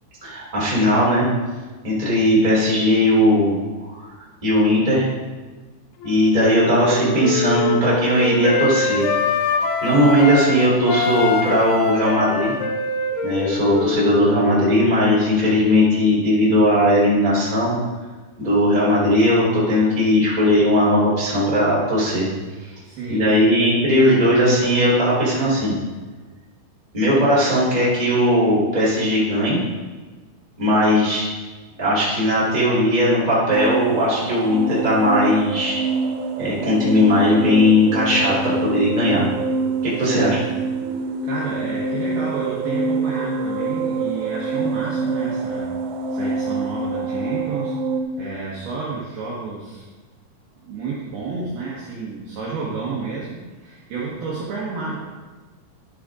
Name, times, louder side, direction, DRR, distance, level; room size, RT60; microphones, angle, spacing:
voice 1, 0.2-1.2 1.8-3.6 3.9-4.0 4.4-5.1 6.0-9.1 9.8-12.5 13.2-17.7 18.4-22.3 23.1-25.7 26.9-29.6 30.6-31.3 31.8-35.8 36.4-39.3 39.8-40.4, left 1 dB, 10° right, -7 dB, 2.7 m, -18 dB
Wind instrument woodwind instrument, 6.0-10.5 10.8-15.3, left 4 dB, 85° left, 2.3 m, -24 dB
voice 2, 22.8-23.6 40.0-40.6 41.2-45.7 46.1-47.8 48.2-49.9 50.6-55.0, right 4 dB, 65° right, -5 dB, 2.7 m, -31 dB
sound 1, 33.5-48.0, right 3 dB, 85° right, 3.5 m, -26 dB
12.0 x 8.6 x 3.8 m, 1.3 s
omnidirectional pair, 5.9 m